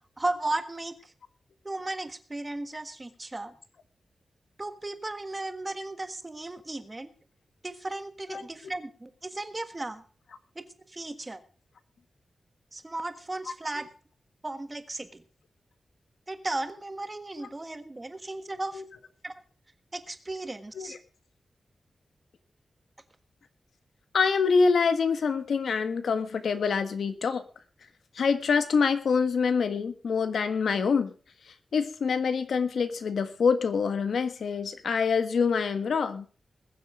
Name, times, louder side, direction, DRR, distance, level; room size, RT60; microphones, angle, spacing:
voice 1, 0.2-1.1 1.6-3.5 4.6-7.1 7.6-10.0 10.5-11.4 12.7-13.9 14.4-15.2 16.3-18.8 19.2-19.3 19.9-21.0, right 2 dB, 25° right, 10 dB, 1.5 m, -35 dB
voice 2, 24.1-27.4 28.2-31.1 31.7-36.3, left 5 dB, 90° left, 10 dB, 1.6 m, -25 dB
21.0 x 7.7 x 5.0 m, 0.37 s
wide cardioid pair, 115°, 0 cm